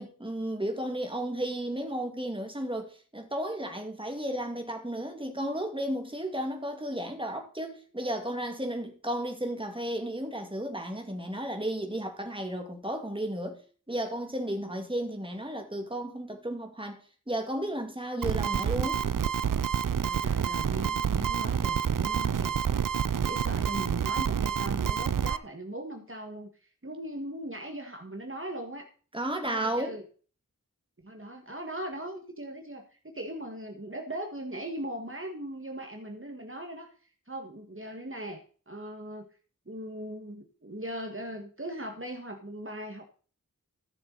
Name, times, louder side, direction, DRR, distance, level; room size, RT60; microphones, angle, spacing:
voice 1, 0.0-13.6 13.9-17.0 17.3-19.1 29.1-30.0, right 1 dB, 15° right, 2.2 m, -33 dB
sound 1, 18.2-25.4, right 8 dB, 70° right, 0.5 m, -28 dB
voice 2, 20.0-22.5 23.2-26.5 26.8-28.9 29.4-30.0 31.0-36.9 37.3-39.3 39.7-43.0, right 1 dB, 40° right, 2.0 m, -39 dB
13.5 x 7.0 x 4.1 m
wide cardioid pair, 40°, 34 cm